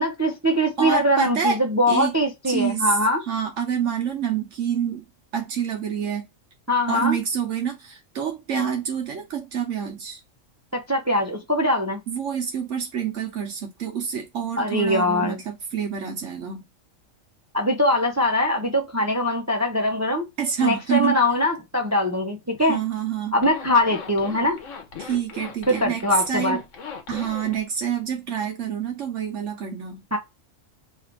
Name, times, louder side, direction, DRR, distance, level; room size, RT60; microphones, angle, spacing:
voice 1, 0.0-3.2 6.7-7.2 10.7-12.0 14.6-15.4 17.5-20.3 20.6-22.8 23.3-24.6 25.7-26.6 30.1-30.2, left 1 dB, 25° right, 0.4 m, -22 dB
voice 2, 0.8-1.6 1.9-2.1 2.4-3.0 3.3-5.0 5.3-6.2 6.9-10.2 12.1-16.7 20.4-21.2 22.7-23.3 25.0-26.6 27.1-30.0, right 7 dB, 75° right, 1.1 m, -27 dB
Zipper (clothing), 23.3-27.6, left 5 dB, 75° left, 1.3 m, -38 dB
3.2 x 2.5 x 4.4 m
omnidirectional pair, 1.3 m